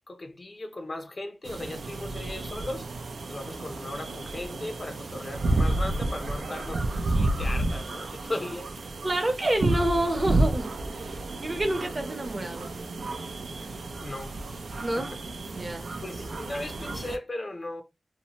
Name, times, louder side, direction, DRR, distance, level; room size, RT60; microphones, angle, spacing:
voice 1, 0.1-2.9 3.3-8.8 13.6-13.7 14.0-14.5 14.9-15.2 16.0-17.8, left 1 dB, 45° left, 0.5 m, -37 dB
sound 1, 1.4-17.2, right 2 dB, 85° right, 0.4 m, -31 dB
voice 2, 9.0-12.7 14.8-15.1 15.5-15.9, right 1 dB, 40° right, 0.7 m, -28 dB
2.7 x 2.1 x 2.8 m
wide cardioid pair, 75°, 0 cm